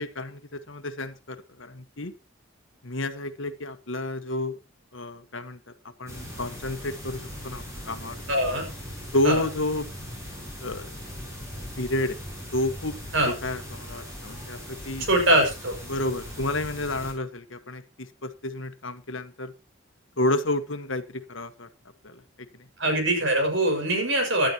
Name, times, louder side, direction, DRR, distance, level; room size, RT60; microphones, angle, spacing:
voice 1, 0.0-2.1 2.8-4.6 4.9-5.6 6.0-8.2 9.1-9.9 10.6-10.9 11.8-12.2 12.5-12.9 13.2-15.1 15.9-19.5 20.2-21.7 22.0-22.2 22.6-22.7, left 1 dB, 65° left, 10 dB, 1.4 m, -30 dB
sound 1, 6.1-17.1, equal, 15° right, 5.9 m, -39 dB
voice 2, 8.3-8.7 9.2-9.4 13.1-13.3 15.1-15.7 22.8-24.5, right 1 dB, 65° right, 3 dB, 6.0 m, -22 dB
17.5 x 11.5 x 3.0 m, 0.29 s
head